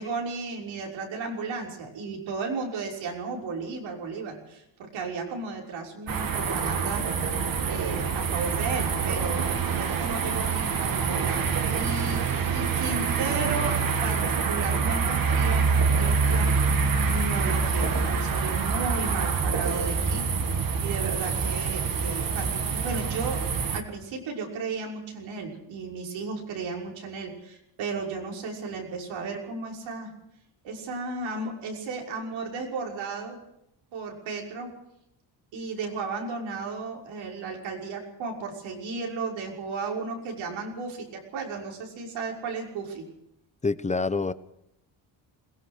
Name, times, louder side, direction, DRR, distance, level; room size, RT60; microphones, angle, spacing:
voice 1, 0.0-12.2 12.5-16.5 17.1-20.2 20.8-23.4 23.7-30.1 30.6-33.4 33.9-34.7 35.5-43.1, right 4 dB, 80° right, 0 dB, 6.1 m, -34 dB
sound 1, 6.1-23.8, right 5 dB, 50° right, 2.5 m, -26 dB
voice 2, 43.6-44.3, left 3 dB, 15° left, 13 dB, 1.0 m, -26 dB
22.0 x 18.5 x 6.5 m, 0.81 s
cardioid pair, 95°, 46 cm